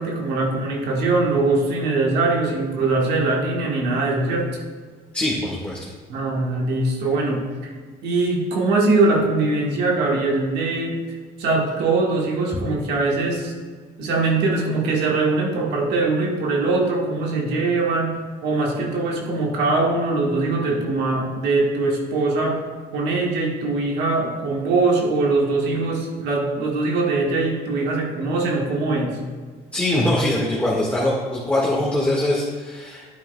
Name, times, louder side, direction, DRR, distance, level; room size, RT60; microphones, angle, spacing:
voice 1, 0.0-4.5 6.1-7.7 8.0-11.0 11.4-13.5 14.0-22.6 22.9-29.2, right 3 dB, 80° right, -1 dB, 1.6 m, -22 dB
voice 2, 5.1-5.8 29.7-33.1, left 1 dB, 5° left, -6 dB, 1.6 m, -22 dB
10.0 x 8.9 x 2.3 m, 1.5 s
cardioid pair, 110°, 17 cm